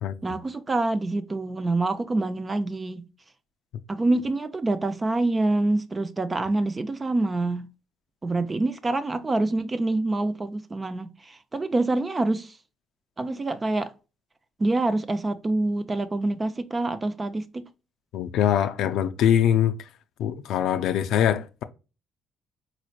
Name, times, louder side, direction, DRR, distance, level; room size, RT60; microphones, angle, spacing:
voice 1, 0.2-3.0 3.9-7.7 8.2-12.6 13.2-13.9 14.6-17.6, right 2 dB, 25° right, 0.4 m, -26 dB
voice 2, 18.1-19.9 20.2-21.6, left 10 dB, 75° left, 0.4 m, -23 dB
4.1 x 3.1 x 2.2 m
supercardioid pair, 80°, 0 cm